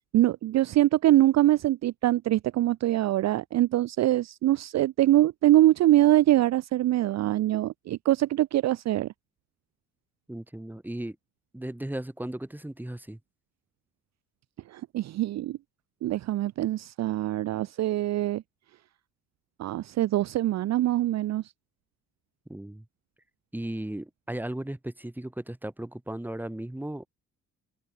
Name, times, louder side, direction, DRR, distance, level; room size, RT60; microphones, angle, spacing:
voice 1, 0.1-9.1 14.7-15.6 16.0-18.4 19.6-21.4, right 14 dB, 55° right, 0.6 m, -23 dB
voice 2, 10.3-11.2 11.5-13.2 22.5-22.9 23.5-27.1, right 1 dB, 5° right, 3.6 m, -36 dB
cardioid pair, 110°, 33 cm